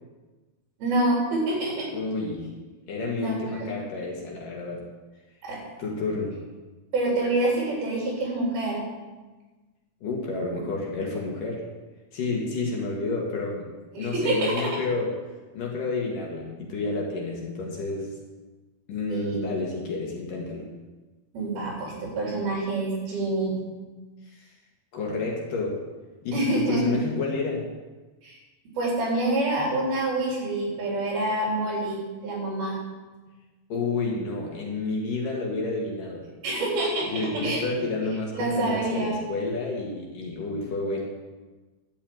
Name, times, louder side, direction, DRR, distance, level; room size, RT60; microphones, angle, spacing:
voice 1, 0.8-1.9 3.2-3.7 5.4-5.6 6.9-8.8 13.9-14.5 19.1-19.4 21.3-23.6 26.3-27.0 28.2-28.4 28.8-32.8 36.4-37.6 38.3-39.2, right 2 dB, 65° right, -3 dB, 5.6 m, -27 dB
voice 2, 1.9-2.5 2.9-4.8 5.8-6.4 10.0-11.6 12.1-13.7 14.0-15.2 15.5-18.1 18.9-20.7 24.3-24.5 24.9-25.8 26.2-27.6 33.7-36.2 37.1-41.0, left 3 dB, 60° left, -2 dB, 3.1 m, -30 dB
12.0 x 7.0 x 8.7 m, 1.2 s
omnidirectional pair, 4.8 m